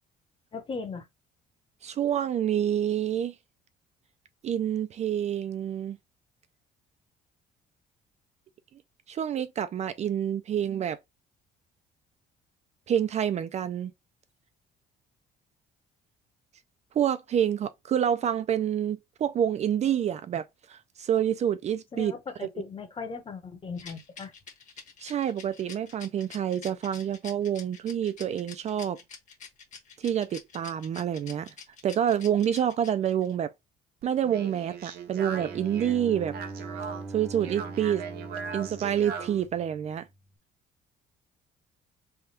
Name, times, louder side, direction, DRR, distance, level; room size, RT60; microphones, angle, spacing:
voice 1, 0.5-1.1 21.9-24.3, left 5 dB, 30° left, 0.9 m, -38 dB
voice 2, 1.8-3.3 4.4-6.0 9.1-11.0 12.9-13.9 17.0-22.1 22.4-22.5 25.0-29.0 30.0-31.5 31.8-33.5 34.0-36.4 37.1-38.0 38.5-40.1, right 9 dB, 40° right, 0.4 m, -27 dB
Rattle, 23.8-33.3, left 6 dB, 45° left, 1.2 m, -46 dB
Speech, 34.0-39.5, right 6 dB, 65° right, 0.9 m, -39 dB
Bowed string instrument, 35.3-40.1, right 3 dB, 10° right, 0.7 m, -42 dB
3.5 x 2.3 x 4.2 m
cardioid pair, 110°, 17 cm